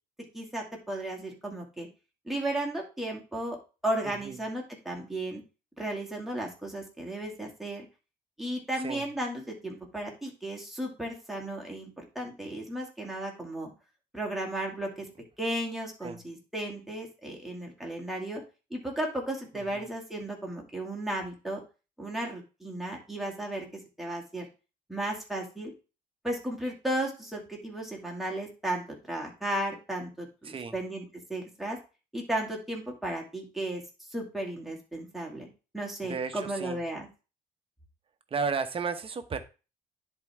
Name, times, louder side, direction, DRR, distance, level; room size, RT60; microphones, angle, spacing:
voice 1, 0.3-1.9 2.3-3.6 3.8-5.4 5.8-7.9 8.4-13.7 14.1-15.1 15.4-18.4 18.7-21.6 22.0-23.7 24.0-24.5 24.9-25.7 26.2-31.0 31.3-31.8 32.1-33.8 34.1-35.5 35.7-37.1, right 1 dB, ahead, -2 dB, 2.4 m, -34 dB
voice 2, 4.0-4.4 8.8-9.0 16.0-16.2 19.5-19.8 30.4-30.8 36.0-36.8 38.3-39.4, right 5 dB, 35° right, 8 dB, 1.0 m, -34 dB
10.0 x 4.4 x 3.6 m, 0.31 s
cardioid pair, 110°, 17 cm